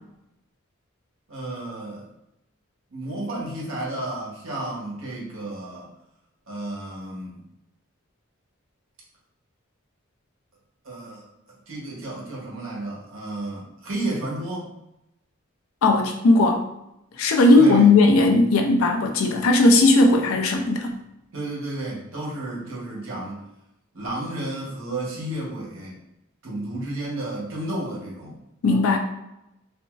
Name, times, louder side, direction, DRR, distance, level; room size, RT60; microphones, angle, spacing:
voice 1, 1.3-2.1 2.9-5.9 6.5-7.4 10.8-14.7 17.5-17.9 20.3-20.4 21.3-23.4 23.9-26.0 26.4-28.4, right 1 dB, 75° right, -4 dB, 0.9 m, -32 dB
voice 2, 15.8-16.6 17.2-21.0 28.6-29.0, left 2 dB, 85° left, 3 dB, 0.4 m, -17 dB
2.9 x 2.5 x 2.4 m, 0.85 s
head